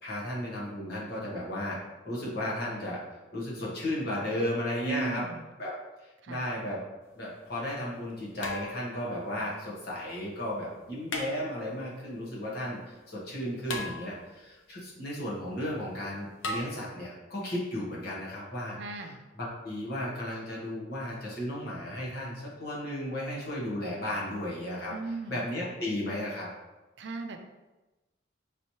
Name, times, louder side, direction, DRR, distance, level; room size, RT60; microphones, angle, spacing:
voice 1, 0.0-1.8 2.0-3.0 3.3-5.2 5.6-5.8 6.0-6.8 7.1-18.8 19.4-24.9 25.3-26.5, left 1 dB, 55° left, -5 dB, 1.3 m, -34 dB
voice 2, 4.8-5.5 6.2-6.5 18.8-19.2 24.9-25.5 27.0-27.4, right 4 dB, 65° right, 6 dB, 0.4 m, -37 dB
sound 1, 7.0-7.1 8.4-9.1 11.1-11.8 13.7-14.5 16.4-16.6, left 2 dB, 80° left, 0.7 m, -37 dB
5.3 x 3.1 x 2.8 m, 1.1 s
head